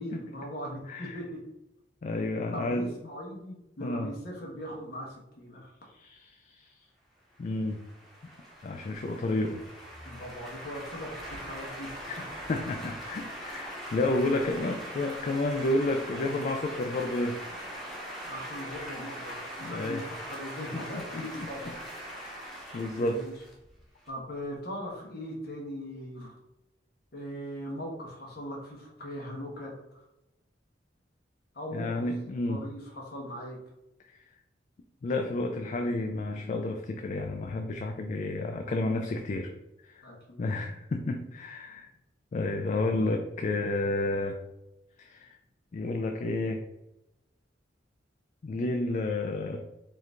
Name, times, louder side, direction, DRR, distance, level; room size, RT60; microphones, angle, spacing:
voice 1, 0.0-1.4 2.5-5.7 10.0-12.1 14.0-14.4 18.2-22.1 22.9-23.3 24.1-26.3 27.1-30.0 31.5-33.6 40.0-40.4, equal, 60° left, -2 dB, 0.9 m, -40 dB
voice 2, 0.9-1.2 2.0-2.9 3.8-4.1 5.9-6.8 7.4-7.8 8.6-9.6 12.1-12.2 12.5-17.4 19.6-20.0 20.9-21.7 22.1-23.2 31.7-32.7 34.0-34.2 35.0-39.5 39.8-40.0 40.4-41.9 42.3-44.4 45.0-45.4 45.7-46.6 48.4-49.6, left 2 dB, 40° left, 5 dB, 0.3 m, -31 dB
sound 1, 7.4-24.1, equal, ahead, 1.0 m, -41 dB
4.5 x 2.5 x 3.4 m, 0.91 s
head